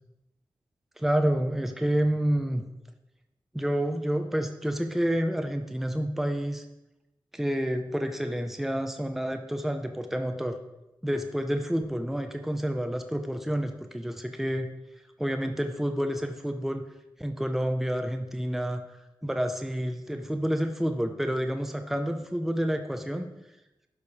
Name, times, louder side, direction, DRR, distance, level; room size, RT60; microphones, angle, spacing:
voice 1, 1.0-2.7 3.5-6.6 7.3-10.6 11.0-14.7 15.2-16.8 17.2-18.8 19.2-23.3, equal, 5° right, 6 dB, 0.7 m, -29 dB
12.0 x 5.1 x 5.4 m, 0.94 s
wide cardioid pair, 120°, 9 cm